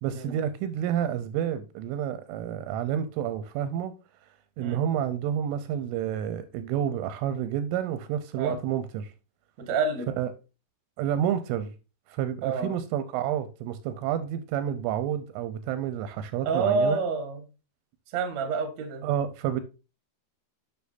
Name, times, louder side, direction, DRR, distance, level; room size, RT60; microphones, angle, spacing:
voice 1, 0.0-3.9 4.6-9.1 10.2-10.3 11.0-11.7 12.1-17.0 19.0-19.6, right 10 dB, 85° right, 3.0 m, -29 dB
voice 2, 9.6-10.1 12.4-12.7 16.4-17.4 18.1-19.0, right 4 dB, 65° right, 1.8 m, -28 dB
9.4 x 6.6 x 2.6 m
omnidirectional pair, 5.9 m